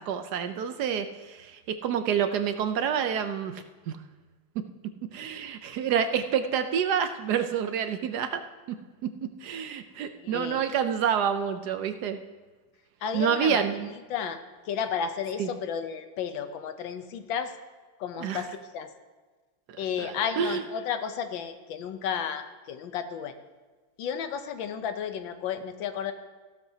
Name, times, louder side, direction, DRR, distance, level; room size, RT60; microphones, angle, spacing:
voice 1, 0.0-4.0 5.1-8.4 9.0-9.1 9.4-12.2 13.1-13.9 15.4-15.5 18.2-18.4 20.0-20.6, right 8 dB, 70° right, 9 dB, 1.1 m, -28 dB
voice 2, 10.0-10.6 13.0-13.6 14.1-14.4 14.6-17.5 18.0-18.9 19.8-23.3 24.0-26.1, left 7 dB, 85° left, 9 dB, 1.6 m, -32 dB
15.0 x 12.5 x 2.8 m, 1.3 s
omnidirectional pair, 2.0 m